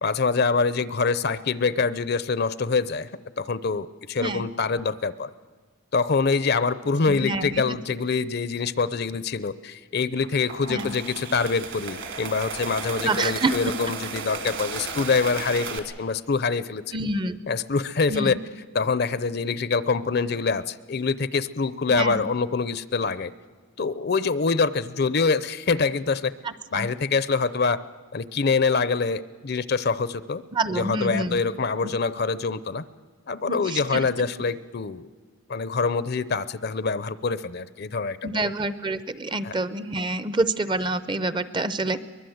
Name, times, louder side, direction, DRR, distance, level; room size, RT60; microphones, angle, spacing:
voice 1, 0.0-3.1 3.4-5.3 5.9-17.0 17.5-18.4 18.7-23.3 23.8-26.3 26.7-27.8 28.1-30.4 30.7-32.8 33.3-35.1 35.5-38.5 39.4-39.5, left 4 dB, 50° left, 16 dB, 0.6 m, -25 dB
voice 2, 7.1-7.6 10.7-10.9 13.0-13.7 16.9-17.4 18.1-18.4 21.9-22.3 26.4-26.9 30.5-31.4 33.5-33.8 34.2-34.3 38.2-42.0, right 2 dB, 20° right, 14 dB, 0.6 m, -27 dB
sound 1, 10.2-15.8, right 4 dB, 60° right, 2.4 m, -34 dB
23.5 x 21.0 x 7.9 m, 1.5 s
head